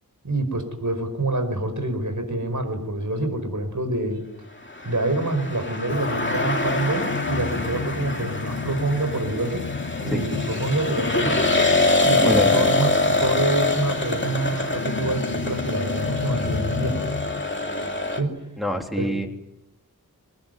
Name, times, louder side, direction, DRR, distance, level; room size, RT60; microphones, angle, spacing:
voice 1, 0.2-4.2 4.8-9.6 10.0-11.5 12.0-17.0 18.1-18.4 19.0-19.1, right 2 dB, 60° right, 7 dB, 5.4 m, -26 dB
sound 1, 4.7-18.2, left 2 dB, 35° left, 2.5 m, -25 dB
sound 2, 5.9-17.4, left 4 dB, 80° left, 2.0 m, -32 dB
voice 2, 18.6-19.3, left 1 dB, ahead, 2 dB, 3.6 m, -25 dB
22.5 x 20.0 x 9.5 m, 0.89 s
wide cardioid pair, 60°, 35 cm